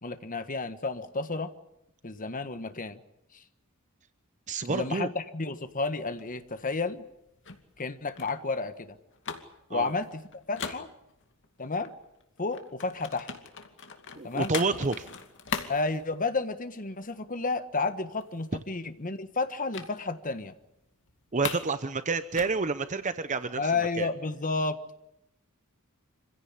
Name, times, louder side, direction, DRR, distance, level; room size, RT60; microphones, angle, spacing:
voice 1, 0.0-1.5 2.0-3.0 3.3-3.4 4.7-7.0 7.8-9.0 9.7-10.9 11.6-11.9 12.4-13.3 14.2-14.5 15.7-20.5 23.6-24.8, left 3 dB, 40° left, 10 dB, 1.5 m, -31 dB
voice 2, 4.5-5.1 9.7-9.9 14.2-15.1 21.3-23.6 24.0-24.1, right 4 dB, 35° right, 12 dB, 0.8 m, -29 dB
sound 1, 5.7-11.5 11.8-16.7 17.0-17.3 17.6-17.7 18.0-18.7 19.7-19.9 20.3-20.4 20.8-21.7 22.0-23.7, left 6 dB, 60° left, 2.5 m, -40 dB
26.5 x 16.5 x 9.9 m, 0.85 s
head